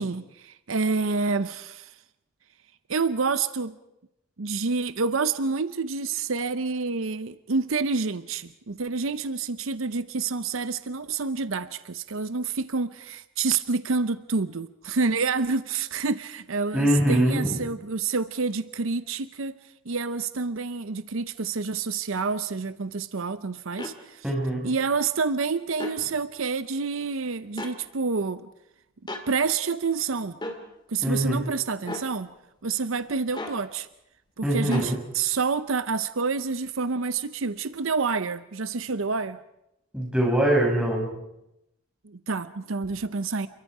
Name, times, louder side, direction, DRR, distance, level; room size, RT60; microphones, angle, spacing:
voice 1, 0.0-1.9 2.9-3.8 4.4-19.5 19.9-24.2 24.6-28.5 29.3-30.4 30.9-32.3 32.6-33.9 34.4-39.4 42.0-43.5, right 4 dB, 75° right, 0.7 m, -28 dB
voice 2, 16.7-17.5 24.2-24.6 31.0-31.4 34.4-35.0 39.9-41.1, right 1 dB, 5° right, 6.0 m, -23 dB
sound 1, 23.8-24.0 25.7-26.0 27.6-27.8 29.1-29.3 30.4-30.6 31.8-32.1 33.3-33.6 34.7-34.9, left 2 dB, 20° left, 2.2 m, -35 dB
28.5 x 23.0 x 4.9 m
head